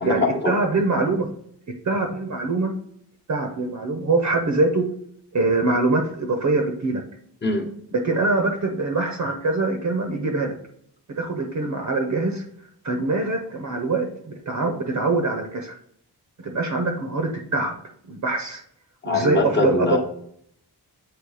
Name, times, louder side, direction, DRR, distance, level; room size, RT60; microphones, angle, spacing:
voice 1, 0.0-1.3 1.8-2.7 3.3-4.9 5.3-7.0 8.0-10.5 11.2-12.4 12.8-15.7 16.4-17.7 18.1-18.6 19.0-20.0, right 3 dB, 45° right, 4 dB, 0.7 m, -23 dB
voice 2, 19.0-20.0, left 3 dB, 25° left, 1 dB, 1.0 m, -22 dB
7.8 x 3.1 x 4.8 m, 0.69 s
wide cardioid pair, 155°, 41 cm